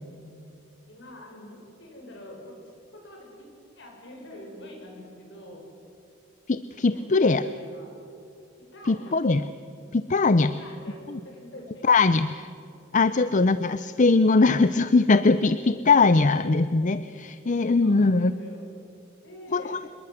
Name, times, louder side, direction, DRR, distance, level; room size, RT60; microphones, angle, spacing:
voice 1, 0.9-2.6 2.9-5.6 6.9-8.0 8.7-9.1 10.5-12.3 13.1-13.2 17.8-18.6 19.2-19.8, left 1 dB, 60° left, 0 dB, 7.3 m, -45 dB
voice 2, 6.5-7.4 8.9-9.4 9.9-10.6 11.8-12.5 12.9-18.3 19.5-19.8, left 3 dB, 40° left, 13 dB, 0.6 m, -21 dB
26.0 x 22.0 x 7.8 m, 2.7 s
head